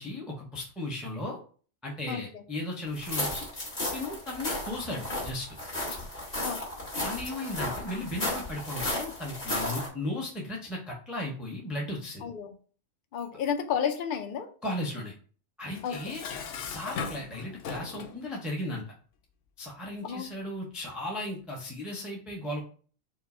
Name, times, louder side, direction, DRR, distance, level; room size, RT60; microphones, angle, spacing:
voice 1, 0.0-1.4 1.8-3.5 3.9-5.6 7.0-12.3 14.6-15.1 15.6-16.2 16.6-18.9 19.6-22.6, left 1 dB, ahead, -3 dB, 0.7 m, -36 dB
voice 2, 2.1-2.4 6.4-6.6 12.2-12.6 13.1-14.5 15.8-16.2 20.0-20.3, left 7 dB, 55° left, 6 dB, 0.6 m, -32 dB
sound 1, 2.9-9.9, left 1 dB, 35° left, 1.9 m, -34 dB
Dishes pots and pans, 15.8-18.2, left 6 dB, 75° left, 0.9 m, -38 dB
4.7 x 2.2 x 4.2 m, 0.42 s
omnidirectional pair, 1.3 m